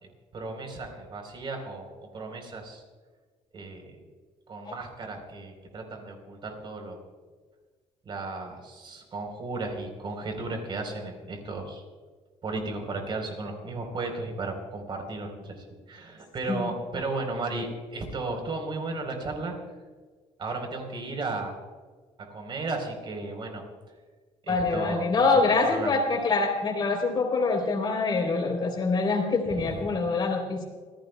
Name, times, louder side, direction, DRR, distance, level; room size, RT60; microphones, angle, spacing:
voice 1, 0.0-2.8 3.5-4.0 4.5-7.0 8.1-11.8 12.4-19.5 20.4-21.5 22.3-23.6 24.4-25.1 25.7-25.9 29.5-30.0, right 3 dB, 40° right, 3 dB, 3.9 m, -35 dB
voice 2, 24.5-30.6, left 3 dB, 35° left, 3 dB, 3.5 m, -25 dB
27.5 x 15.5 x 2.3 m, 1.4 s
cardioid pair, 150°, 13 cm